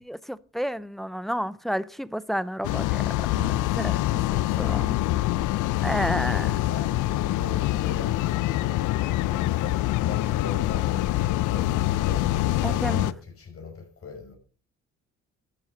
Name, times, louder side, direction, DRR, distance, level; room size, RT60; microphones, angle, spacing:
voice 1, 0.0-3.0 3.3-5.0 5.8-6.5 12.6-13.1, equal, ahead, 0.6 m, -31 dB
sound 1, 2.6-13.1, left 16 dB, 85° left, 0.5 m, -25 dB
voice 2, 3.9-4.5 6.0-13.7 14.0-14.3, left 4 dB, 50° left, 5.6 m, -39 dB
12.5 x 7.3 x 6.5 m
cardioid pair, 90°, 30 cm